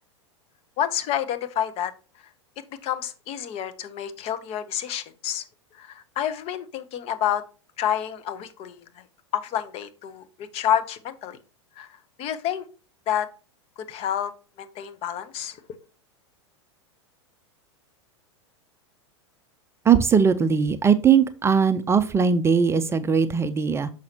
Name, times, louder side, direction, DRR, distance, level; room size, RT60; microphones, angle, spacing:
voice 1, 0.8-1.9 2.8-5.4 5.8-7.4 7.8-8.8 9.3-11.4 11.8-11.9 12.2-12.6 13.1-13.3 13.8-14.3 14.6-15.6, left 10 dB, 40° left, 11 dB, 0.9 m, -28 dB
voice 2, 19.8-23.9, right 6 dB, 15° right, 11 dB, 0.5 m, -20 dB
6.3 x 5.7 x 2.8 m, 0.35 s
hypercardioid pair, 100°, 15 cm